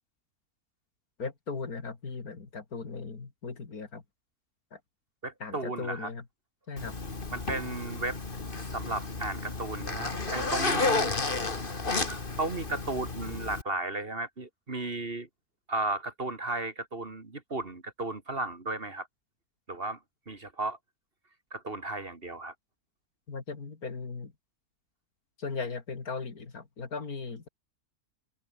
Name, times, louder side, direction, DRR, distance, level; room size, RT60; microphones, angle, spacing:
voice 1, 1.2-4.0 4.7-4.8 5.4-6.2 6.7-7.0 23.3-24.3 25.4-27.5, left 4 dB, 65° left, 3.1 m, -38 dB
voice 2, 5.2-6.1 7.3-8.2 8.7-11.1 12.1-15.3 15.7-19.1 19.7-20.0 20.3-20.8 21.5-22.5, right 2 dB, 35° right, 2.5 m, -34 dB
Zipper (clothing), 6.8-13.6, left 3 dB, 35° left, 2.4 m, -32 dB
omnidirectional pair, 1.6 m